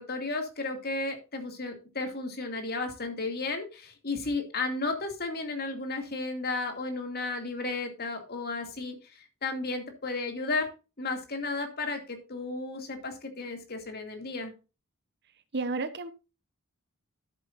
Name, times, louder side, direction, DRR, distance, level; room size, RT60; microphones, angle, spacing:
voice 1, 0.0-10.7 11.0-14.5, left 3 dB, 50° left, 5 dB, 2.5 m, -33 dB
voice 2, 15.5-16.1, right 3 dB, 55° right, 12 dB, 1.0 m, -31 dB
13.0 x 7.9 x 2.6 m, 0.30 s
head